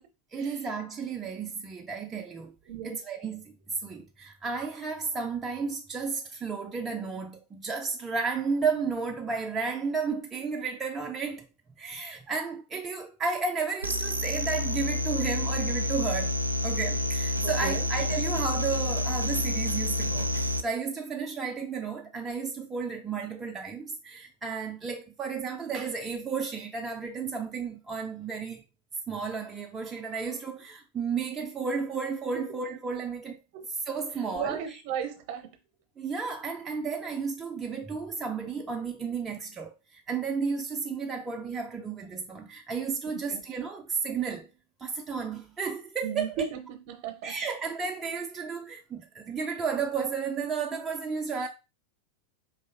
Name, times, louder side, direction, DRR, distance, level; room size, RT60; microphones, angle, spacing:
voice 1, 0.3-2.5 2.8-3.5 3.8-11.5 11.8-28.6 29.1-33.4 33.7-34.8 36.0-44.5 44.8-46.5 47.2-51.5, right 5 dB, 20° right, 0.4 m, -33 dB
sound 1, 13.8-20.6, left 2 dB, 85° right, 0.3 m, -29 dB
voice 2, 34.3-35.5 43.3-43.4 46.0-47.3, right 7 dB, 45° right, 0.8 m, -35 dB
4.6 x 3.1 x 2.6 m
figure-of-eight pair, 90°, 0 cm